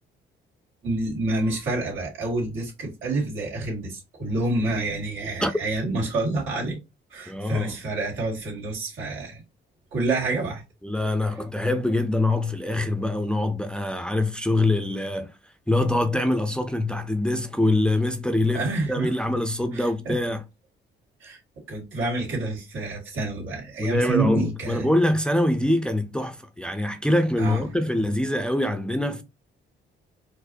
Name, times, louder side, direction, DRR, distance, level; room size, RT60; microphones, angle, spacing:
voice 1, 0.8-6.8 7.1-9.4 9.9-10.6 18.5-19.1 19.7-20.2 21.2-21.4 21.7-24.9 27.4-27.6, right 2 dB, 85° right, 2.0 m, -28 dB
voice 2, 7.3-7.8 10.8-15.4 15.7-20.4 23.8-29.2, left 1 dB, 5° left, 0.4 m, -24 dB
4.5 x 2.1 x 2.6 m
cardioid pair, 90°, 20 cm